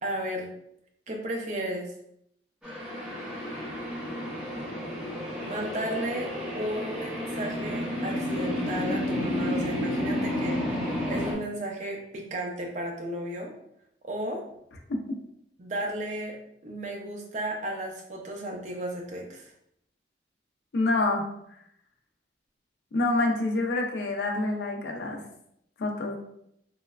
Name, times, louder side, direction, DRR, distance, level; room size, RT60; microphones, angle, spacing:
voice 1, 0.0-0.5 1.1-1.9 5.4-10.6 11.1-13.5 14.0-14.4 15.6-16.4 16.6-19.5, right 1 dB, 40° right, 1 dB, 0.4 m, -34 dB
sound 1, 2.6-11.3, left 1 dB, 5° right, 0.6 m, -31 dB
voice 2, 20.7-21.3 22.9-25.2 25.8-26.2, left 2 dB, 70° left, 2 dB, 0.4 m, -26 dB
3.1 x 2.0 x 2.3 m, 0.75 s
head